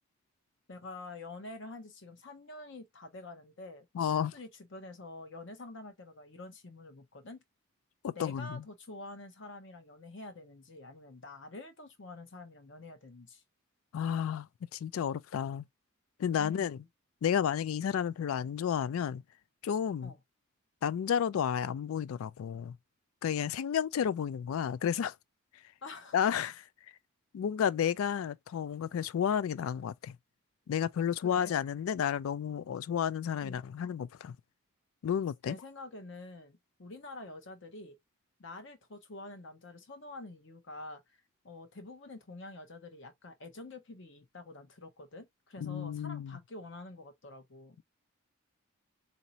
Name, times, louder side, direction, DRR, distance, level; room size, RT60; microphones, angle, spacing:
voice 1, 0.7-7.4 8.2-13.4 16.4-16.9 20.0-20.2 25.8-26.2 31.2-31.6 33.4-33.6 35.5-38.0 38.4-41.0 41.4-47.8, left 2 dB, 55° left, 0.8 m, -47 dB
voice 2, 3.9-4.3 8.0-8.6 13.9-15.7 16.2-16.8 17.2-19.2 19.6-20.1 20.8-22.8 23.2-25.1 26.1-26.6 27.3-30.2 30.7-34.4 35.0-35.6 45.6-46.4, left 8 dB, 75° left, 0.3 m, -31 dB
4.1 x 2.7 x 2.8 m
head